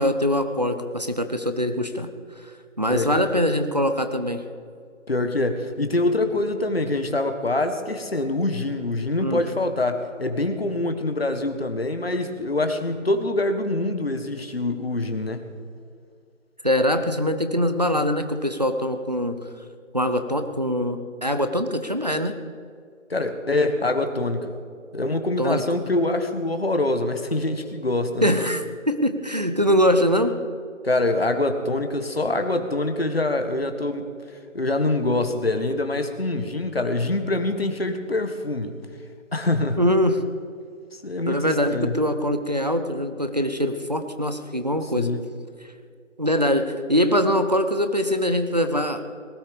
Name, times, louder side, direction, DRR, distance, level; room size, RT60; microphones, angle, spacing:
voice 1, 0.0-2.1 2.4-4.4 9.2-9.4 16.6-19.4 19.9-22.3 25.4-25.6 28.2-30.3 39.8-40.2 41.3-45.1 46.2-49.0, equal, 35° right, 8 dB, 0.9 m, -23 dB
voice 2, 2.9-3.2 5.1-15.4 23.1-24.6 24.9-28.3 30.8-34.1 34.5-38.8 39.3-39.8 41.0-41.9 44.9-45.2, left 2 dB, 50° left, 7 dB, 1.6 m, -25 dB
19.5 x 12.5 x 5.2 m, 2.3 s
figure-of-eight pair, 180°, 38 cm